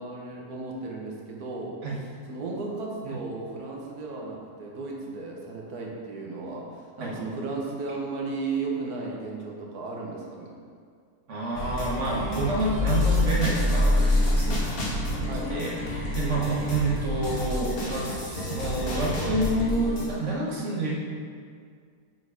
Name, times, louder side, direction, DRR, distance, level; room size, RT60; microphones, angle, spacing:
voice 1, 0.0-1.8 2.3-10.5 15.3-15.5, right 3 dB, 80° right, -1 dB, 1.6 m, -35 dB
voice 2, 11.3-14.6 15.1-20.9, right 2 dB, 55° right, -5 dB, 1.6 m, -28 dB
sound 1, 11.5-20.1, left 1 dB, 40° left, 1.2 m, -27 dB
7.0 x 4.0 x 4.9 m, 2.1 s
omnidirectional pair, 1.6 m